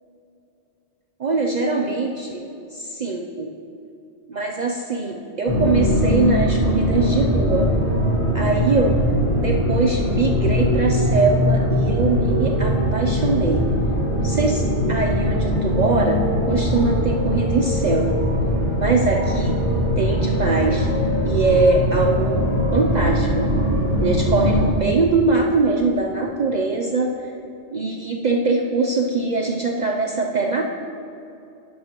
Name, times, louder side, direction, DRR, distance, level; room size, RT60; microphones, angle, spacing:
voice 1, 1.2-2.4 2.7-3.5 4.3-7.7 8.3-9.0 9.4-13.7 14.2-16.2 16.5-18.2 18.8-19.6 20.0-20.9 21.2-22.4 22.7-23.5 24.0-27.1 27.7-30.6, right 3 dB, 50° right, 2 dB, 0.6 m, -22 dB
sound 1, 5.5-24.7, equal, 50° left, 2.2 m, -21 dB
11.0 x 8.6 x 3.0 m, 2.7 s
omnidirectional pair, 1.1 m